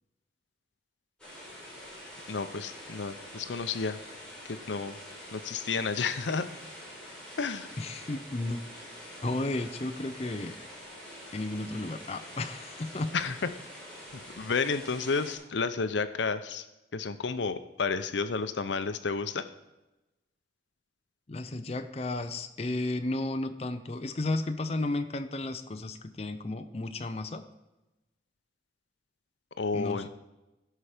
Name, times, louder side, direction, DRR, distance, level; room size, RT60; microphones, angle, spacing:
sound 1, 1.2-15.3, equal, 5° left, 3.7 m, -46 dB
voice 1, 2.3-4.0 4.4-5.0 5.3-6.4 7.4-7.7 13.1-13.5 14.1-16.6 16.9-19.5 29.6-30.1, left 4 dB, 85° left, 11 dB, 0.7 m, -31 dB
voice 2, 7.8-8.6 9.2-10.6 11.3-13.1 21.3-27.4 29.7-30.1, left 2 dB, 35° left, 7 dB, 0.6 m, -33 dB
16.0 x 5.8 x 5.0 m, 1.0 s
head